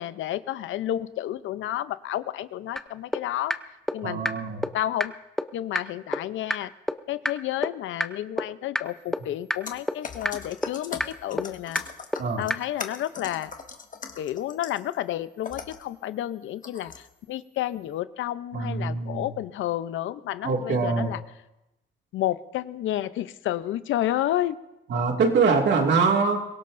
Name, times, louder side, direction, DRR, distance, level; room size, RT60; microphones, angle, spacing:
voice 1, 0.0-3.5 3.9-4.2 4.7-5.1 5.5-6.7 7.1-11.8 12.4-13.5 14.2-21.2 22.1-24.6, left 13 dB, 80° left, 14 dB, 0.7 m, -30 dB
sound 1, 2.8-2.9 3.1-3.2 3.5-3.6 3.9-4.0 4.2-4.3 4.6-4.7 5.0-5.1 5.4-5.5 5.7-5.8 6.1-6.2 6.5-6.6 6.9-7.0 7.2-7.3 7.6-7.7 8.0-8.1 8.4-8.5 8.7-8.8 9.1-9.2 9.5-9.6 9.9-10.0 10.2-10.3 10.6-10.7 11.0-11.1 11.4-11.5 11.7-11.8 12.1-12.2 12.5-12.6, left 1 dB, ahead, 0.7 m, -25 dB
voice 2, 4.0-4.7 12.2-12.4 18.5-19.3 20.4-21.1 24.9-26.4, right 4 dB, 65° right, 2 dB, 2.2 m, -23 dB
sound 2, 9.6-14.9 15.4-15.9 16.6-17.1, left 5 dB, 40° left, 1.4 m, -40 dB
23.5 x 17.0 x 2.6 m, 0.94 s
cardioid pair, 90°, 20 cm